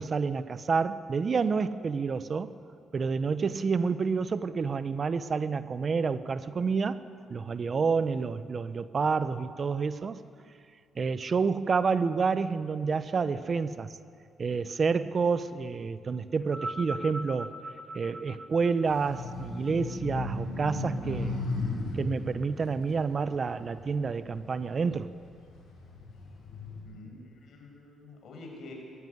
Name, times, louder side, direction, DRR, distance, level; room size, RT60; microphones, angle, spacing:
voice 1, 0.0-2.5 2.9-7.0 7.3-10.2 11.0-13.9 14.4-17.6 17.9-21.4 21.9-25.1, right 5 dB, 40° right, 14 dB, 0.9 m, -29 dB
sound 1, 16.4-20.9 21.8-21.9, right 1 dB, 15° right, 1.4 m, -41 dB
sound 2, 18.8-24.4 24.9-26.8, left 3 dB, 80° left, 6.8 m, -36 dB
voice 2, 26.8-28.7, left 3 dB, 65° left, 1 dB, 6.2 m, -48 dB
20.5 x 14.5 x 9.6 m, 2.3 s
cardioid pair, 90°, 0 cm